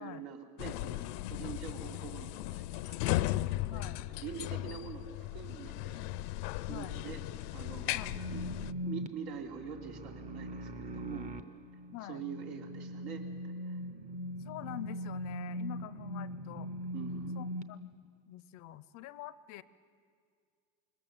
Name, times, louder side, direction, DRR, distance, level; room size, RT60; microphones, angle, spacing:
voice 1, 0.0-3.4 3.7-6.0 6.6-7.2 7.5-8.4 8.8-11.3 12.1-13.2 13.6-13.8 16.9-17.4, right 8 dB, 85° right, 2 dB, 3.3 m, -45 dB
sound 1, 0.6-8.7, left 16 dB, 85° left, 0.6 m, -36 dB
voice 2, 3.6-4.0 6.7-7.0 7.9-8.2 11.9-12.2 14.4-16.7 17.3-17.9 18.3-19.6, left 14 dB, 40° left, 17 dB, 0.5 m, -46 dB
sound 2, 8.0-17.6, equal, 15° right, 0.6 m, -41 dB
26.5 x 21.0 x 7.3 m, 2.2 s
cardioid pair, 160°, 46 cm